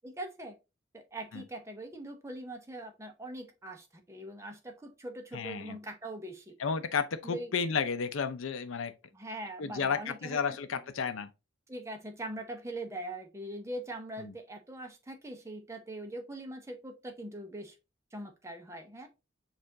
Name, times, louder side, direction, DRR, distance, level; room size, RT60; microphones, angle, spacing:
voice 1, 0.0-0.6 0.9-6.6 7.2-7.5 9.1-10.6 11.7-17.8 18.1-19.1, right 1 dB, 15° right, 0.6 m, -42 dB
voice 2, 5.3-5.8 6.6-8.9 9.6-11.3 14.2-14.3, left 6 dB, 75° left, 0.5 m, -32 dB
6.5 x 2.5 x 2.7 m
head